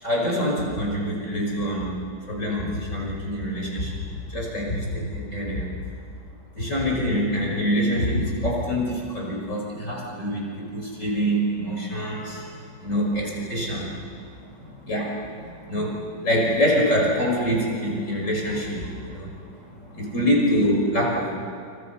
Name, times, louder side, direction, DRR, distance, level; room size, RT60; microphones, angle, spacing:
voice 1, 0.0-1.9 2.3-4.0 4.3-5.7 6.5-14.0 14.3-19.6 19.8-21.3, equal, 40° left, -2 dB, 6.2 m, -25 dB
29.5 x 29.5 x 5.7 m, 2.4 s
omnidirectional pair, 2.1 m